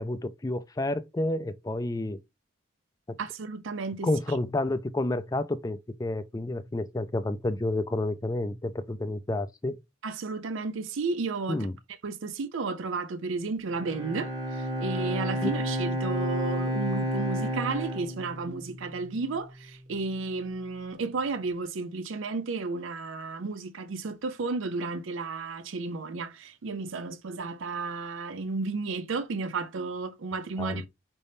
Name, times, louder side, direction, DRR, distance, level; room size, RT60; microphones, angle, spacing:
voice 1, 0.0-2.2 3.1-3.2 4.0-9.8 11.5-11.8 15.4-15.5 30.6-30.8, left 2 dB, 15° left, 0.3 m, -30 dB
voice 2, 3.2-4.1 10.0-11.7 12.0-30.9, right 4 dB, 75° right, 0.5 m, -33 dB
Bowed string instrument, 13.7-19.1, equal, 20° right, 1.2 m, -31 dB
5.2 x 3.4 x 2.6 m
head